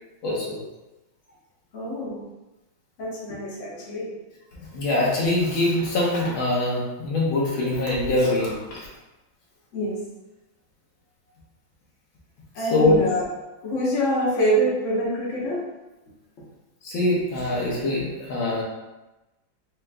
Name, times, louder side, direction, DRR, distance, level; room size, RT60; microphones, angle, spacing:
voice 1, 0.2-0.6 4.5-8.8 12.6-13.0 16.8-18.6, left 1 dB, 75° left, -5 dB, 1.8 m, -23 dB
voice 2, 1.7-2.3 3.0-4.1 9.7-9.9 12.5-13.2 13.6-15.6, right 1 dB, 45° left, -6 dB, 1.2 m, -25 dB
5.0 x 2.9 x 2.2 m, 1.0 s
omnidirectional pair, 2.2 m